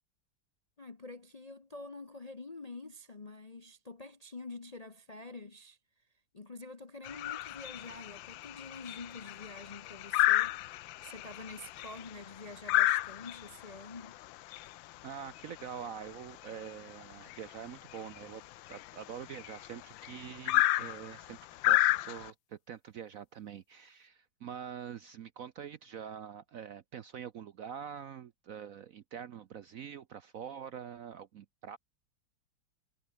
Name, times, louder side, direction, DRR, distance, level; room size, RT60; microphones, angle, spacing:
voice 1, 0.8-5.8 6.3-10.6 11.0-14.2, left 3 dB, 30° left, 0.7 m, -47 dB
sound 1, 7.0-22.3, left 16 dB, 90° left, 1.4 m, -32 dB
voice 2, 15.0-18.4 18.7-31.8, right 8 dB, 60° right, 0.9 m, -45 dB
omnidirectional pair, 2.1 m